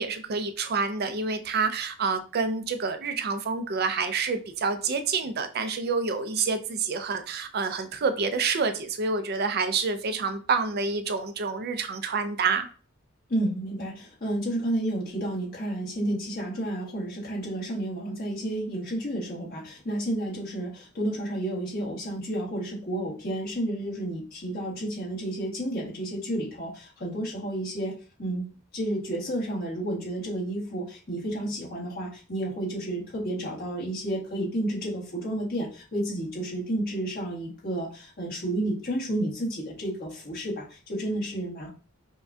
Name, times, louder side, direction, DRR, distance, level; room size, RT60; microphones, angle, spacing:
voice 1, 0.0-12.7, right 4 dB, 50° right, 9 dB, 0.5 m, -28 dB
voice 2, 13.3-28.4 28.7-41.7, right 1 dB, 50° left, -4 dB, 1.4 m, -31 dB
5.4 x 2.3 x 2.6 m, 0.38 s
head